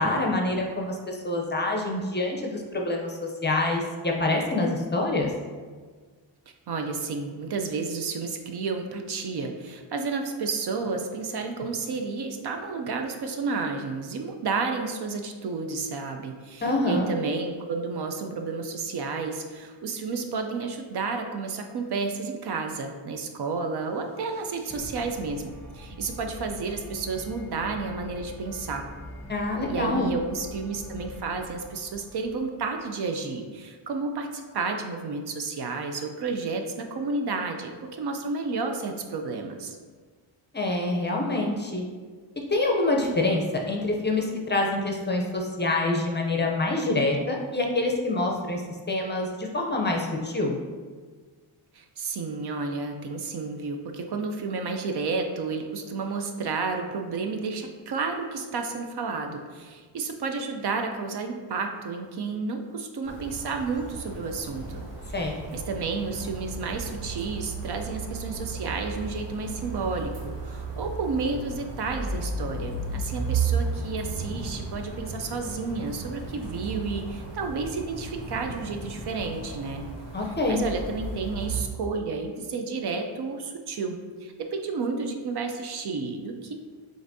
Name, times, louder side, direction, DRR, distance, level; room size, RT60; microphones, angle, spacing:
voice 1, 0.0-5.3 16.6-17.1 29.3-30.1 40.5-41.8 42.5-48.6 48.9-50.6 65.1-65.4 80.1-80.6, left 2 dB, 20° left, 1 dB, 0.5 m, -26 dB
voice 2, 6.7-28.9 29.7-39.8 51.7-64.8 65.5-79.9 80.2-86.5, right 4 dB, 55° right, 4 dB, 0.6 m, -31 dB
sound 1, 23.7-32.8, equal, 5° left, 0.9 m, -44 dB
sound 2, 63.0-81.6, right 4 dB, 85° right, 1.4 m, -34 dB
7.7 x 2.6 x 2.6 m, 1.5 s
cardioid pair, 105°, 49 cm